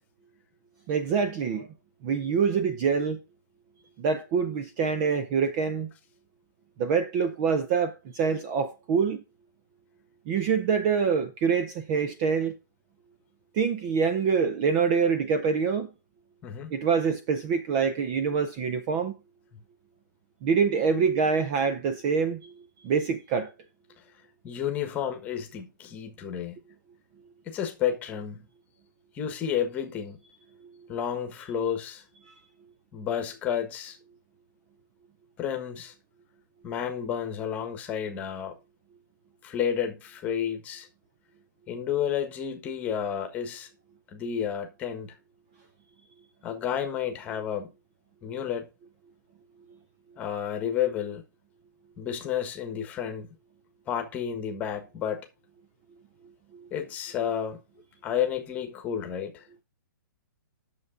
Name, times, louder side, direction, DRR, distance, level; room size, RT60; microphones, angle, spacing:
voice 1, 0.9-1.7 2.0-3.2 4.0-5.9 6.8-9.2 10.3-12.5 13.5-15.9 16.7-19.1 20.4-22.5 22.8-23.5, right 6 dB, 20° right, 0.6 m, -25 dB
voice 2, 24.4-26.6 27.5-28.5 29.1-30.2 30.9-32.0 32.9-34.0 35.4-35.9 36.6-38.5 39.4-40.9 41.7-43.7 44.1-45.1 46.4-47.7 48.2-48.7 50.2-51.2 52.0-53.3 53.9-55.3 56.7-57.6 58.0-59.4, left 8 dB, 15° left, 1.3 m, -31 dB
9.6 x 6.8 x 3.7 m
hypercardioid pair, 170°, 11 cm